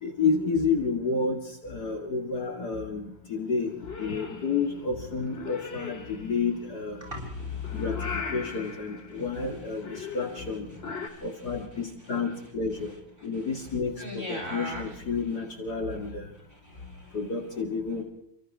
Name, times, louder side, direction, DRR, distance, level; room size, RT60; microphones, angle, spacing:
voice 1, 0.0-7.0 7.7-10.7 11.2-12.9 13.2-16.3 17.1-18.0, left 4 dB, 50° left, 3 dB, 2.7 m, -30 dB
Purr / Meow, 3.6-11.1, left 4 dB, 30° left, 2.6 m, -40 dB
voice 2, 7.0-7.8 9.1-9.6 10.0-10.5 11.0-12.4 13.3-13.5 14.0-15.2 16.5-17.2, equal, 25° right, -1 dB, 8.2 m, -42 dB
30.0 x 25.5 x 3.6 m, 0.79 s
omnidirectional pair, 2.2 m